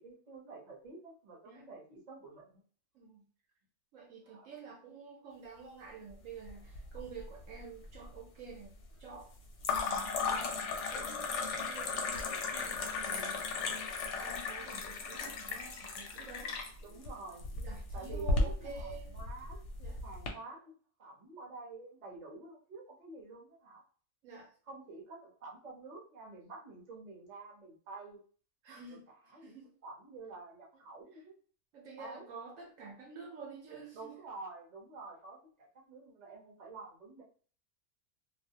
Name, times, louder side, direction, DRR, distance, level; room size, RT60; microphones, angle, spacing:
voice 1, 0.0-2.6 4.2-4.5 12.9-13.4 16.8-17.5 17.9-19.6 20.0-20.6 21.0-23.8 24.7-28.2 29.1-29.6 29.8-31.3 32.0-32.3 33.9-37.2, right 3 dB, 40° right, 0.7 m, -49 dB
voice 2, 3.9-8.7 9.0-9.3 9.7-16.5 17.6-19.2 19.8-20.0 24.2-24.5 28.6-29.1 29.4-29.7 31.1-31.2 31.7-34.2, right 5 dB, 70° right, 0.9 m, -49 dB
sound 1, 6.5-7.2 7.5-8.1 9.6-20.3, left 3 dB, 65° left, 0.8 m, -36 dB
2.4 x 2.0 x 2.7 m
omnidirectional pair, 1.5 m